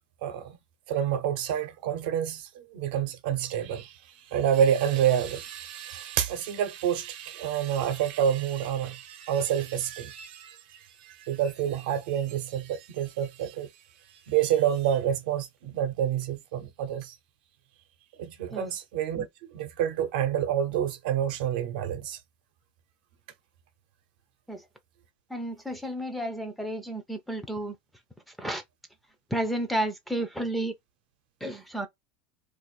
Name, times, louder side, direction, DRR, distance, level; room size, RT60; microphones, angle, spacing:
voice 1, 0.9-3.9 4.3-10.6 11.0-13.7 14.3-17.1 18.2-19.3 19.5-22.2, right 9 dB, 70° right, 0.8 m, -28 dB
voice 2, 25.3-27.8 28.3-28.6 29.3-30.7 31.4-31.9, right 1 dB, ahead, 0.5 m, -32 dB
2.5 x 2.4 x 4.1 m
supercardioid pair, 160°, 5 cm